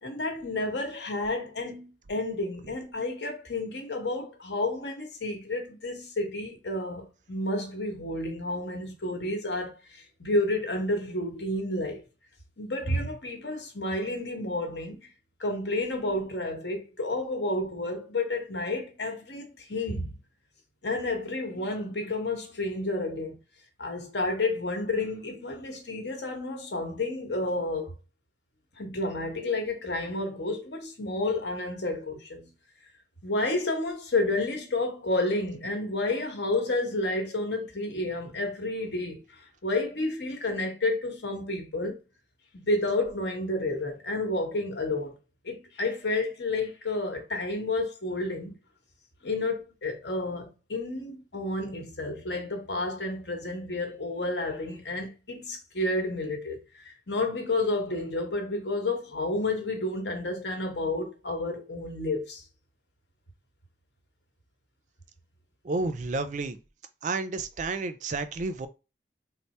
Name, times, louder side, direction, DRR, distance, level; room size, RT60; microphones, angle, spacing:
voice 1, 0.0-12.0 12.6-15.1 15.4-20.1 20.8-23.4 23.8-27.9 28.8-32.5 33.2-42.0 42.5-45.1 45.4-48.5 49.2-56.6 56.8-62.4, left 2 dB, 75° left, 1.1 m, -30 dB
voice 2, 65.6-66.6 67.0-68.7, right 3 dB, 45° right, 0.4 m, -31 dB
3.3 x 2.0 x 4.1 m
head